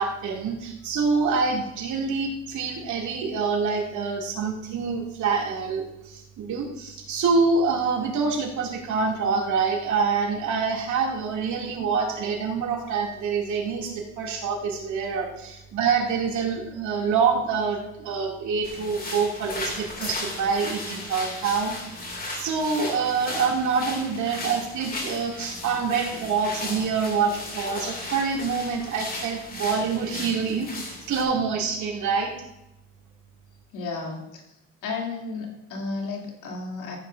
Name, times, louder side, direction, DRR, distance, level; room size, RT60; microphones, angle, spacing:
voice 1, 0.0-22.0 22.3-32.3, right 5 dB, 70° right, 0 dB, 2.7 m, -26 dB
sound 1, 18.6-31.2, left 2 dB, 30° left, 2.5 m, -36 dB
voice 2, 33.7-34.4 34.8-37.0, left 3 dB, 80° left, -1 dB, 3.0 m, -33 dB
14.5 x 9.6 x 2.6 m, 0.88 s
cardioid pair, 95°, 30 cm